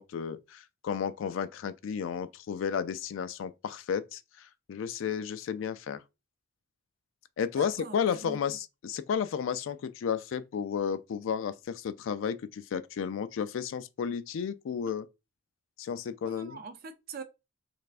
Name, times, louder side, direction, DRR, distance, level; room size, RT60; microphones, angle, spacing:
voice 1, 0.0-6.0 7.4-15.1 15.8-16.6, left 7 dB, 70° left, 0.3 m, -33 dB
voice 2, 7.6-8.4 16.2-17.2, right 4 dB, 45° right, 0.5 m, -43 dB
3.4 x 3.3 x 2.4 m
head